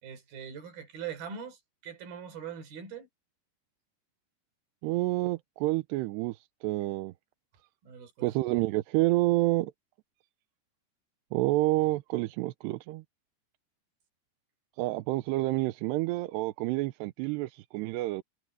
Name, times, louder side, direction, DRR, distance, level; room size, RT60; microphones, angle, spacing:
voice 1, 0.0-3.1 7.8-8.3, right 7 dB, 60° right, 5.3 m, -42 dB
voice 2, 4.8-7.1 8.2-9.7 11.3-13.0 14.8-18.2, right 19 dB, 85° right, 2.8 m, -28 dB
omnidirectional pair, 4.9 m